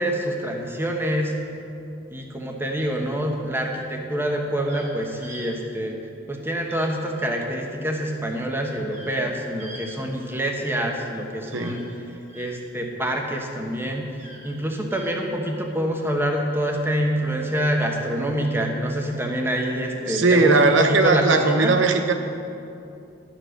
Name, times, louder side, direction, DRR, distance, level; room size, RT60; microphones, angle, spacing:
voice 1, 0.0-1.3 2.1-6.0 6.3-11.8 12.3-14.1 14.4-21.7, equal, 10° right, 1 dB, 1.2 m, -26 dB
sound 1, 2.8-3.3 4.6-4.9 5.2-5.4 6.6-6.9 7.1-7.3 8.9-9.2 9.6-9.8 11.5-12.5 14.1-14.5 14.9-15.1 16.5-16.7, right 1 dB, 40° right, 2.8 m, -44 dB
voice 2, 20.1-22.1, right 3 dB, 75° right, 7 dB, 0.9 m, -19 dB
12.0 x 7.5 x 6.5 m, 2.7 s
head